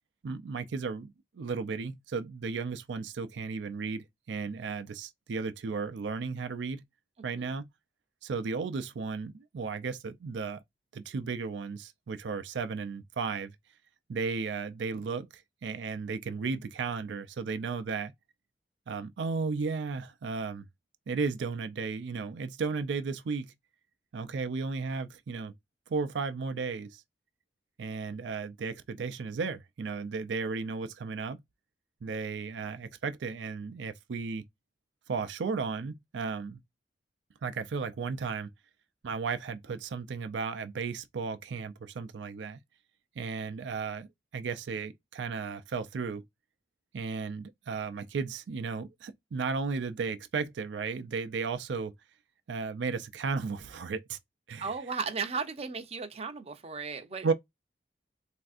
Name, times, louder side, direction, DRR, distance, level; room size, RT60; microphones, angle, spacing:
voice 1, 0.2-6.8 7.2-7.7 8.2-10.6 10.9-13.6 14.1-18.1 18.9-20.7 21.1-23.5 24.1-25.5 25.9-27.0 27.8-31.4 32.0-34.4 35.1-36.6 37.4-38.5 39.0-42.6 43.2-44.1 44.3-46.2 46.9-51.9 52.5-54.2 54.5-54.7 57.2-57.3, right 4 dB, 90° right, 0.4 m, -34 dB
voice 2, 54.6-57.3, right 5 dB, 35° right, 0.6 m, -35 dB
3.4 x 2.5 x 2.4 m
head